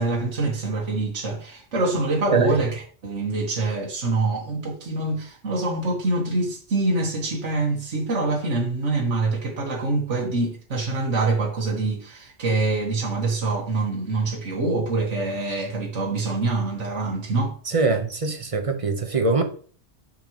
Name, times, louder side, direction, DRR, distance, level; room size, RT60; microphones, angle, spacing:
voice 1, 0.0-17.6, right 3 dB, 80° right, 1.6 m, -25 dB
voice 2, 17.7-19.4, right 3 dB, 30° right, 1.0 m, -23 dB
6.8 x 6.1 x 3.0 m
omnidirectional pair, 1.2 m